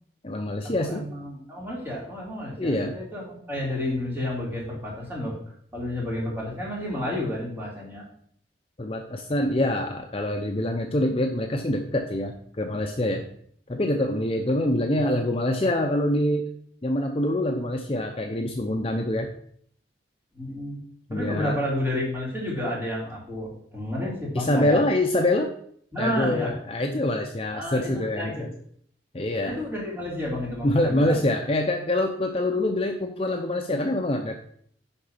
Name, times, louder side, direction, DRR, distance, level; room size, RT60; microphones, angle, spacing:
voice 1, 0.2-1.1 2.6-3.0 8.8-13.3 13.7-16.5 16.8-19.3 21.1-21.6 24.3-25.5 26.0-28.5 29.1-29.6 30.6-34.4, left 1 dB, 30° left, 3 dB, 0.6 m, -25 dB
voice 2, 0.8-5.3 5.7-8.0 20.3-20.8 21.1-24.8 25.9-26.5 27.5-28.5 29.4-31.2, left 1 dB, 10° right, -4 dB, 2.8 m, -31 dB
9.8 x 3.9 x 5.7 m, 0.64 s
head